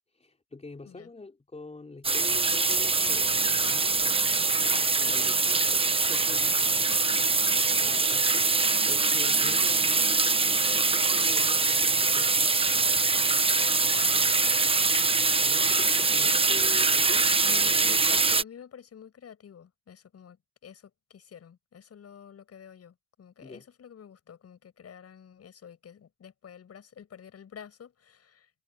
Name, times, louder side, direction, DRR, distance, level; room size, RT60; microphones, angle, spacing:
voice 1, 0.1-6.7 7.8-12.5 15.4-17.4 23.4-23.6, left 3 dB, 20° left, 4.2 m, -45 dB
sound 1, 2.0-18.4, right 4 dB, 20° right, 0.9 m, -23 dB
voice 2, 7.0-7.9 13.9-14.2 17.4-20.4 20.6-28.5, left 8 dB, 55° left, 7.2 m, -48 dB
cardioid pair, 90°, 30 cm